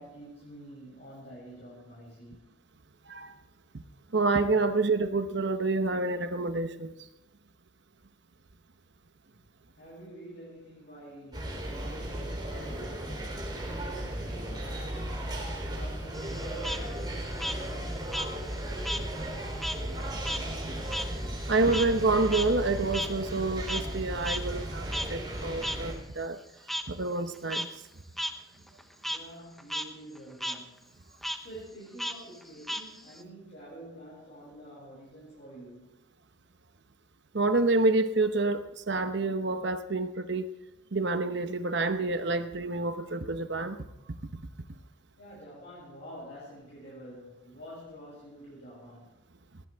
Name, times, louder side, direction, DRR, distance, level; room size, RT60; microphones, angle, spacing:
voice 1, 0.0-2.4 9.3-9.4 9.8-13.0 13.5-15.3 15.6-18.5 29.0-31.0 31.4-36.0 45.2-49.1, equal, 55° left, -8 dB, 7.4 m, -48 dB
voice 2, 4.1-6.9 21.5-26.4 26.9-27.7 37.3-40.5 40.9-43.8 44.1-44.2, right 3 dB, 60° right, 9 dB, 0.9 m, -28 dB
sound 1, 11.3-25.9, right 1 dB, 20° right, 3.6 m, -35 dB
Frog, 16.1-19.1 19.4-24.0 24.2-24.4 24.9-25.1 25.6-25.8 26.7-26.8 27.3-27.7 28.2-28.3 28.7-29.2 29.6-29.8 30.1-30.6 31.2-31.4 32.0-33.2, equal, ahead, 0.8 m, -35 dB
19.0 x 15.5 x 3.6 m, 0.93 s
head